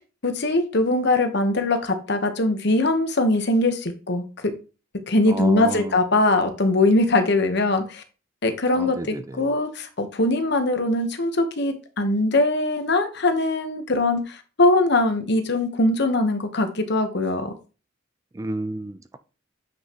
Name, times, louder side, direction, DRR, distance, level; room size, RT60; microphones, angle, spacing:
voice 1, 0.2-4.5 5.1-8.0 8.4-17.5, left 2 dB, 60° left, 1.1 m, -21 dB
voice 2, 5.3-5.9 8.7-9.5 18.3-19.2, right 2 dB, 15° right, 0.3 m, -31 dB
8.0 x 5.8 x 3.0 m
head